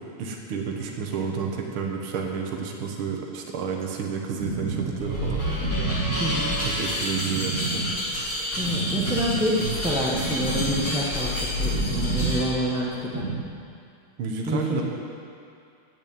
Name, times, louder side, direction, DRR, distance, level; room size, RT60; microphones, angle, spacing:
voice 1, 0.0-5.9 6.6-7.8 14.2-14.8, right 6 dB, 75° right, 1 dB, 2.0 m, -30 dB
sound 1, 4.4-13.4, right 4 dB, 50° right, 1.0 m, -32 dB
sound 2, 5.0-12.5, equal, 45° left, 3.4 m, -28 dB
voice 2, 6.2-6.6 8.6-11.3 11.6-13.3 14.5-14.8, equal, 5° right, -6 dB, 0.7 m, -27 dB
9.2 x 8.8 x 8.6 m, 2.5 s
omnidirectional pair, 2.4 m